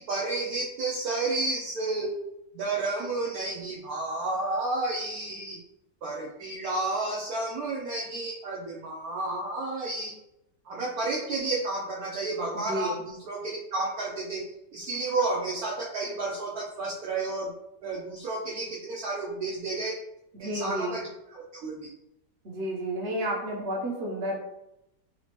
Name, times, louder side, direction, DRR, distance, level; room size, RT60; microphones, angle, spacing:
voice 1, 0.0-2.2 2.5-5.6 6.0-10.1 10.6-17.5 17.8-20.0 20.4-21.9, right 2 dB, 65° right, -3 dB, 1.0 m, -31 dB
voice 2, 12.5-12.9 20.4-21.0 22.4-24.3, equal, 45° right, -3 dB, 1.0 m, -31 dB
4.2 x 2.7 x 3.0 m, 0.84 s
omnidirectional pair, 1.9 m